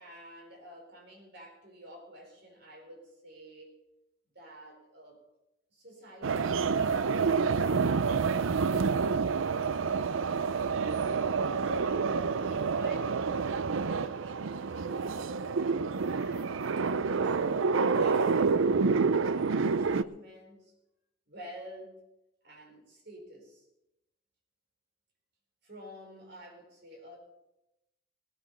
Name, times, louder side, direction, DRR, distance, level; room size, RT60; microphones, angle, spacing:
voice 1, 0.0-3.8 4.3-5.2 5.7-9.9 11.1-13.2 13.9-15.3 16.2-20.7 21.3-22.0 22.4-23.7 25.6-27.2, equal, 55° right, 2 dB, 4.4 m, -50 dB
sound 1, 6.2-20.0, right 5 dB, 80° right, 0.5 m, -28 dB
18.5 x 8.9 x 6.6 m, 0.89 s
head